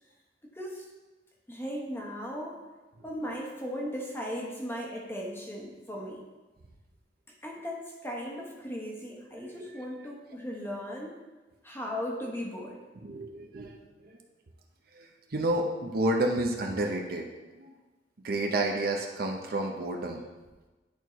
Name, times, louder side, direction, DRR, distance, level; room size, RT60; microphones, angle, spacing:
voice 1, 0.4-0.9 1.5-2.6 3.0-6.2 7.4-11.2 11.6-12.8, equal, 15° left, -1 dB, 1.0 m, -37 dB
voice 2, 13.0-13.7 14.0-14.2 14.9-17.3 17.5-17.7 18.2-20.3, right 1 dB, 60° right, 2 dB, 0.8 m, -30 dB
10.5 x 4.5 x 3.1 m, 1.2 s
head